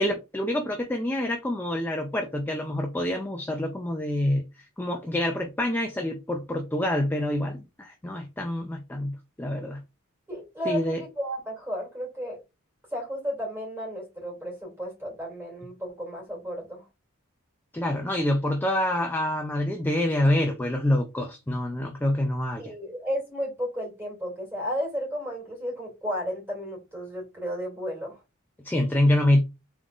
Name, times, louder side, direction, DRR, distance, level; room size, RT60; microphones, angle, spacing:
voice 1, 0.0-4.5 4.8-9.8 10.7-11.0 17.7-22.7 28.6-29.4, left 1 dB, 10° left, 0.3 m, -26 dB
voice 2, 10.3-12.4 12.9-16.8 22.6-28.2, equal, 10° right, 2.4 m, -33 dB
3.6 x 3.5 x 2.4 m
head